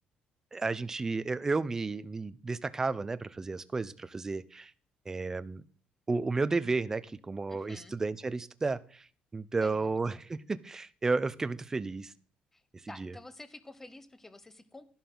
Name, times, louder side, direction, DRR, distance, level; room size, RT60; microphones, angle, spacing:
voice 1, 0.5-4.7 5.1-5.6 6.1-9.1 9.3-12.1 13.0-13.1, right 3 dB, 15° right, 15 dB, 0.6 m, -32 dB
voice 2, 7.5-7.9 9.6-10.3 12.5-12.6 12.9-14.9, left 2 dB, 10° left, 12 dB, 1.0 m, -50 dB
13.0 x 11.5 x 3.9 m, 0.44 s
cardioid pair, 140°, 3 cm